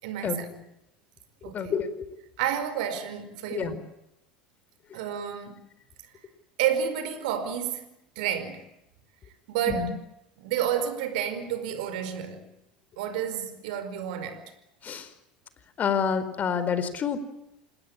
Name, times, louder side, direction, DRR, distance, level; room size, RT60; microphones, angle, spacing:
voice 1, 0.0-0.5 1.4-1.8 2.4-3.8 4.9-5.6 6.6-8.6 9.5-9.9 10.4-12.5 13.0-14.4, right 9 dB, 65° right, 5.0 m, -30 dB
voice 2, 1.5-2.0 3.5-3.8 9.7-10.0 14.8-15.1 15.8-17.2, left 7 dB, 35° left, 4.4 m, -28 dB
27.5 x 20.5 x 8.7 m
hypercardioid pair, 80°, 5 cm